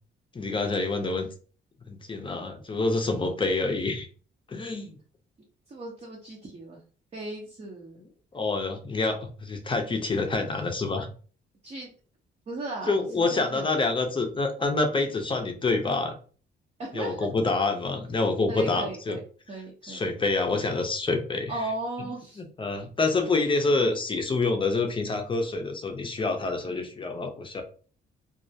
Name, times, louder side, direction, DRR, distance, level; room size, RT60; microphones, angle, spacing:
voice 1, 0.3-1.3 1.9-4.1 4.5-5.0 8.3-11.1 12.9-16.1 16.9-19.2 19.8-21.5 22.6-27.6, left 3 dB, 25° left, 5 dB, 0.5 m, -27 dB
voice 2, 5.7-6.8 7.1-8.0 11.6-11.9 12.5-13.7 16.8-17.3 18.5-19.2 19.5-20.0 21.5-22.4 26.6-26.9, right 2 dB, 35° right, -2 dB, 0.7 m, -36 dB
2.4 x 2.0 x 2.6 m, 0.40 s
cardioid pair, 90°, 20 cm